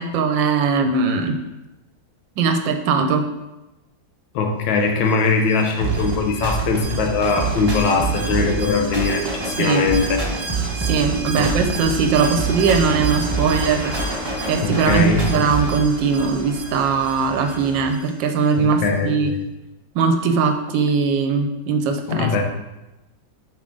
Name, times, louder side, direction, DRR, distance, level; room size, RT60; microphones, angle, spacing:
voice 1, 0.0-1.4 2.4-3.3 9.6-9.9 10.8-14.0 14.5-19.3 19.9-22.4, right 5 dB, 85° right, 6 dB, 1.4 m, -20 dB
voice 2, 4.3-10.3 11.4-11.5 14.6-15.2 18.6-19.4 22.1-22.4, left 4 dB, 85° left, 3 dB, 1.5 m, -21 dB
Alarm, 5.1-18.5 18.9-19.0, right 3 dB, 60° right, 0.9 m, -35 dB
sound 1, 5.8-15.8, right 4 dB, 25° right, 0.6 m, -26 dB
sound 2, 12.1-17.8, left 2 dB, 55° left, 1.5 m, -36 dB
7.2 x 4.9 x 3.8 m, 0.99 s
omnidirectional pair, 2.0 m